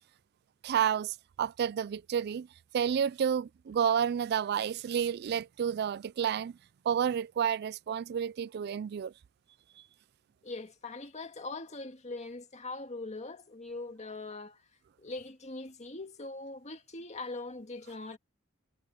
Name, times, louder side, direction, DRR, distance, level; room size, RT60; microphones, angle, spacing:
voice 1, 0.6-2.5 2.7-6.5 6.9-9.1, right 8 dB, 50° right, 0.3 m, -30 dB
voice 2, 10.4-14.6 15.0-18.2, left 3 dB, 35° left, 1.9 m, -41 dB
head